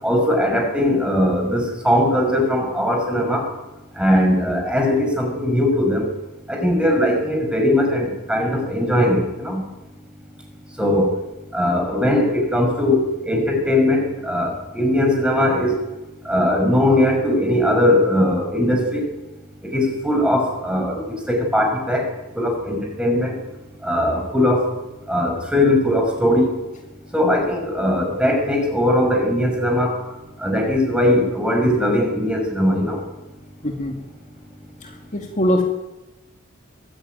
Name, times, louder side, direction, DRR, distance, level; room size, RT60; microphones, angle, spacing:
voice 1, 0.0-3.5 3.9-6.1 6.5-9.6 10.8-11.1 11.5-15.8 16.2-19.1 19.6-23.4 23.8-24.7 25.1-26.7 27.1-30.0 30.4-33.0, left 1 dB, 5° right, 3 dB, 5.7 m, -20 dB
voice 2, 33.6-34.0 35.1-35.6, left 1 dB, 35° left, 2 dB, 2.4 m, -21 dB
23.0 x 15.0 x 9.3 m, 1.0 s
head